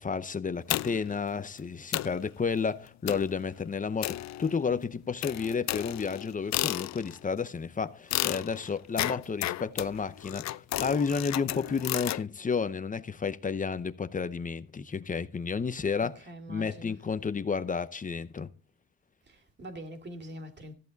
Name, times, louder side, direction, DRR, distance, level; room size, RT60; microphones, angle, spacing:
voice 1, 0.0-18.5, left 5 dB, 25° left, 0.7 m, -31 dB
sound 1, 0.7-1.2 1.6-1.7 1.9-2.2 3.1-3.4 4.0-4.7 5.2-7.2 8.1-12.2, left 15 dB, 65° left, 0.5 m, -33 dB
voice 2, 16.0-17.1 19.3-20.7, right 1 dB, 35° right, 2.4 m, -44 dB
14.0 x 8.1 x 4.1 m
cardioid pair, 90°, 30 cm